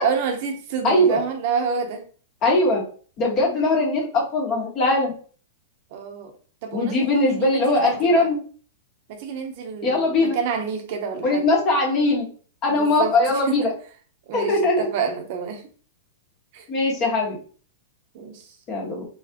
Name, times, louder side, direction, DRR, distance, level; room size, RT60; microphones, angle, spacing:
voice 1, 0.0-2.0 5.9-6.3 6.6-8.3 9.1-11.5 12.7-13.2 13.5-13.7 14.3-15.6 16.5-16.6 18.1-18.5, right 6 dB, 50° right, 5 dB, 0.9 m, -28 dB
voice 2, 0.8-1.2 2.4-2.8 3.2-5.1 6.7-8.4 9.8-10.4 11.2-12.3 12.6-13.7 14.3-14.9 16.7-17.4 18.7-19.0, left 2 dB, 35° left, -1 dB, 1.7 m, -20 dB
4.0 x 3.8 x 3.0 m, 0.41 s
hypercardioid pair, 150°, 0 cm